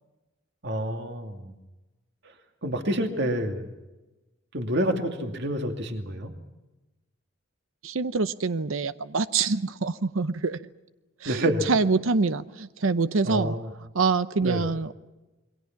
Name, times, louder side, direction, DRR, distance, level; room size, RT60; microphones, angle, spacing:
voice 1, 0.6-1.5 2.6-3.7 4.5-6.3 11.3-11.7 13.2-13.7 14.4-14.6, right 1 dB, 55° right, 5 dB, 2.5 m, -28 dB
voice 2, 7.8-10.6 11.2-13.6 13.9-14.9, right 4 dB, 75° right, 13 dB, 0.8 m, -25 dB
27.5 x 23.0 x 5.9 m, 1.1 s
head